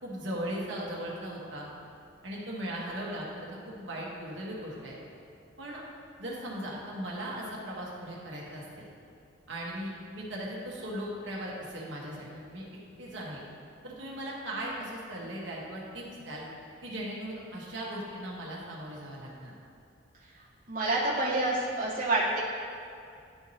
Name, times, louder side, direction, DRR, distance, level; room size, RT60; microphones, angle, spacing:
voice 1, 0.0-1.7 2.2-4.9 5.6-5.8 6.2-8.9 9.5-12.6 13.0-13.4 13.8-16.4 16.8-19.5, right 1 dB, 65° right, -4 dB, 1.2 m, -38 dB
voice 2, 20.7-22.4, right 2 dB, 40° right, -7 dB, 1.1 m, -27 dB
10.5 x 4.6 x 2.8 m, 2.5 s
head